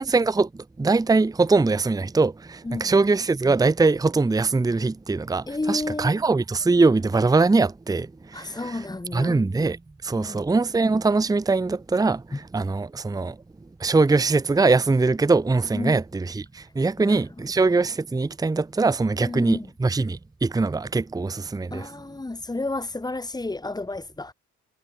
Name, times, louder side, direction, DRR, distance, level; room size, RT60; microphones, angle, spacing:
voice 1, 0.0-8.8 9.1-13.4 13.8-21.9, right 3 dB, 10° right, 0.7 m, -22 dB
voice 2, 2.6-3.0 5.5-6.2 8.3-9.4 10.2-10.5 12.3-12.4 15.7-16.0 17.0-17.2 17.7-17.8 19.2-19.7 21.7-24.3, left 2 dB, 15° left, 1.7 m, -31 dB
cardioid pair, 90°, 30 cm